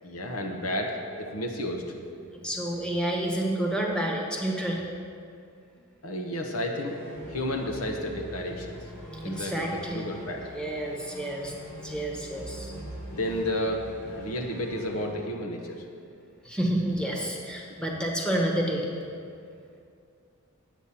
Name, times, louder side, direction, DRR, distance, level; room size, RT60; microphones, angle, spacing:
voice 1, 0.0-1.8 6.0-7.0 7.3-8.8 9.2-10.5 13.1-15.8, left 1 dB, 75° left, 2 dB, 1.0 m, -32 dB
voice 2, 2.4-4.8 9.1-10.0 10.5-11.5 11.8-12.7 16.4-18.9, right 1 dB, 5° left, -1 dB, 1.2 m, -29 dB
sound 1, 6.8-15.1, equal, 55° left, 2.7 m, -43 dB
9.2 x 8.3 x 5.8 m, 2.4 s
head